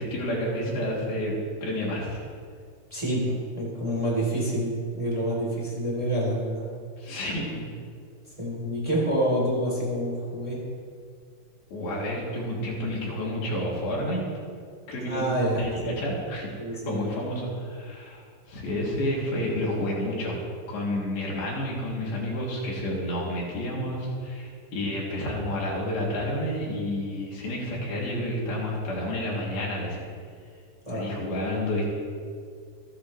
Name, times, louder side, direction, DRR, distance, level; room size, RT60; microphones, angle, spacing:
voice 1, 0.0-2.2 7.0-7.6 11.7-14.3 14.9-15.3 15.6-16.5 16.9-18.2 18.5-20.4 20.7-30.0 30.9-31.9, left 1 dB, 85° left, -5 dB, 4.9 m, -30 dB
voice 2, 2.9-6.6 8.3-10.6 15.0-15.9 16.6-17.1 30.9-31.2, right 1 dB, 10° right, -5 dB, 3.5 m, -27 dB
26.5 x 10.0 x 3.3 m, 2.1 s
omnidirectional pair, 4.2 m